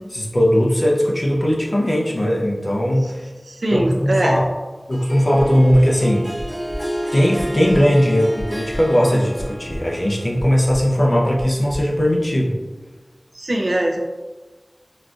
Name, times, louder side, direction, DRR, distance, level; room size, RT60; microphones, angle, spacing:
voice 1, 0.1-3.3 3.7-4.4 4.9-6.3 7.1-12.5, equal, 55° left, -3 dB, 0.6 m, -18 dB
voice 2, 3.4-4.4 13.3-14.0, right 1 dB, 90° right, 1 dB, 0.4 m, -21 dB
Harp, 4.9-10.7, equal, ahead, 0.3 m, -31 dB
sound 1, 6.3-6.8 7.3-7.8 8.3-8.8 9.3-9.8 10.3-10.8 11.3-11.8 12.3-12.4, equal, 20° left, 0.8 m, -31 dB
4.0 x 2.4 x 2.4 m, 1.3 s
wide cardioid pair, 45°, 0 cm